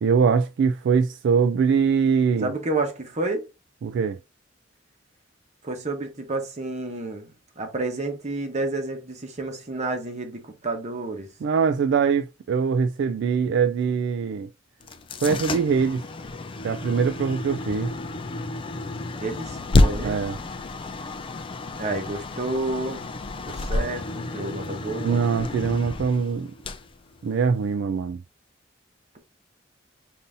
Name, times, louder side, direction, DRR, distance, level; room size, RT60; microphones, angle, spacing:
voice 1, 0.0-2.5 3.8-4.2 11.4-14.5 15.2-16.0 16.6-17.9 20.0-20.4 25.0-26.5 27.2-28.2, right 6 dB, 65° right, 0.3 m, -22 dB
voice 2, 2.4-3.5 5.6-7.3 7.6-11.3 19.2-20.2 21.7-23.1 23.4-25.2, right 2 dB, 40° right, 1.1 m, -30 dB
sound 1, 14.8-27.7, left 2 dB, 25° left, 0.4 m, -29 dB
5.3 x 2.7 x 2.6 m
head